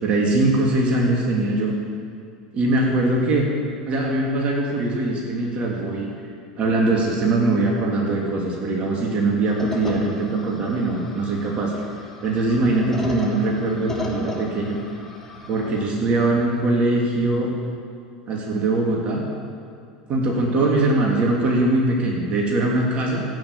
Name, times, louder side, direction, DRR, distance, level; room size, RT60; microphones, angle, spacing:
voice 1, 0.0-1.7 2.5-3.5 3.9-6.1 6.6-14.8 15.5-17.5 18.3-19.2 20.1-23.2, right 2 dB, 40° right, -1 dB, 2.9 m, -21 dB
sound 1, 9.4-15.9, left 2 dB, 10° left, 3.0 m, -37 dB
14.0 x 9.3 x 8.7 m, 2.3 s
hypercardioid pair, 80°, 3 cm